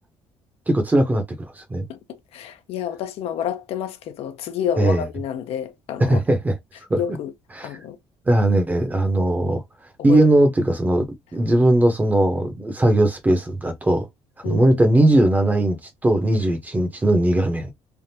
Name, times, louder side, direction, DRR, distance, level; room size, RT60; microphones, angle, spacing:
voice 1, 0.7-1.2 1.6-1.9 4.8-5.0 6.0-6.5 6.9-7.0 7.5-7.7 8.3-9.6 10.0-11.1 11.3-14.1 14.4-17.7, right 1 dB, 15° right, 0.8 m, -19 dB
voice 2, 1.9-6.2 6.9-7.3 7.6-8.0 10.0-10.2 14.4-14.8, left 9 dB, 70° left, 0.6 m, -29 dB
3.4 x 2.5 x 2.7 m
cardioid pair, 145°, 11 cm